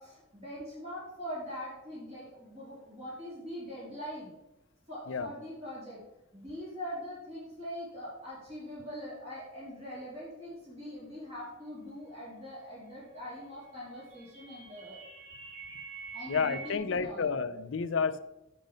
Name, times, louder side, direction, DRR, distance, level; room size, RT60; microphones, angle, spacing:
voice 1, 0.0-4.3 4.9-6.0 6.3-15.0 16.1-17.3, equal, 35° right, -8 dB, 3.5 m, -42 dB
sound 1, 13.6-16.8, right 5 dB, 70° right, 2.5 m, -46 dB
voice 2, 16.3-18.2, left 5 dB, 65° left, 13 dB, 0.5 m, -30 dB
7.3 x 6.4 x 5.1 m, 0.93 s
head